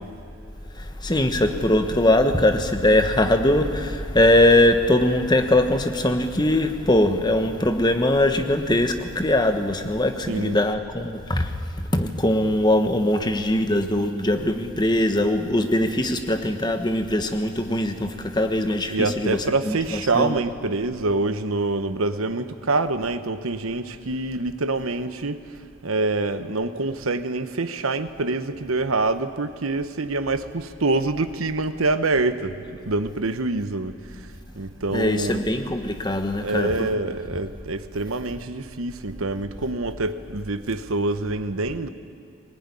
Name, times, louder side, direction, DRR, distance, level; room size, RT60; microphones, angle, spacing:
voice 1, 0.7-20.4 34.9-37.0, left 1 dB, 20° left, 1.2 m, -21 dB
voice 2, 10.3-10.6 18.9-25.4 25.8-34.0 34.6-35.4 36.4-41.9, right 3 dB, 85° right, 1.1 m, -26 dB
20.5 x 19.5 x 9.9 m
head